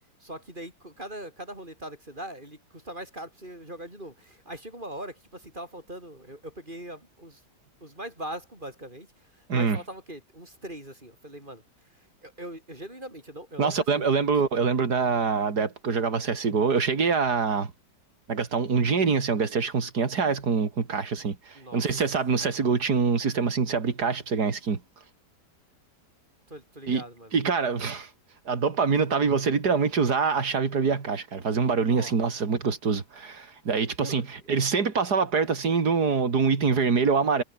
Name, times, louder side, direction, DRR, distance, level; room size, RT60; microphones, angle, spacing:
voice 1, 0.2-7.4 7.8-14.3 21.5-22.0 26.5-27.3 31.9-32.1 34.0-34.3, right 1 dB, 25° right, 7.5 m, -41 dB
voice 2, 13.6-17.7 18.3-24.8 26.9-27.0 27.3-28.1 28.5-37.4, right 5 dB, 65° right, 3.1 m, -25 dB
omnidirectional pair, 1.9 m